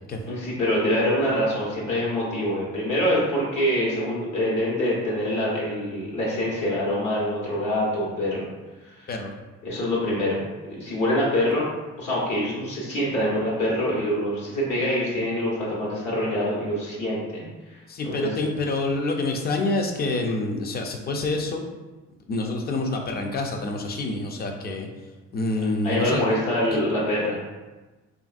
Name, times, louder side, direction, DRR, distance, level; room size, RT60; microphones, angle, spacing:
voice 1, 0.3-8.4 8.9-9.1 9.6-11.6 12.0-17.5 17.7-18.3 25.8-27.4, left 1 dB, 75° left, -5 dB, 1.2 m, -25 dB
voice 2, 17.9-21.6 22.3-24.9 25.3-26.2, left 2 dB, 30° left, 3 dB, 0.4 m, -27 dB
3.1 x 2.5 x 2.5 m, 1.2 s
cardioid pair, 90°, 30 cm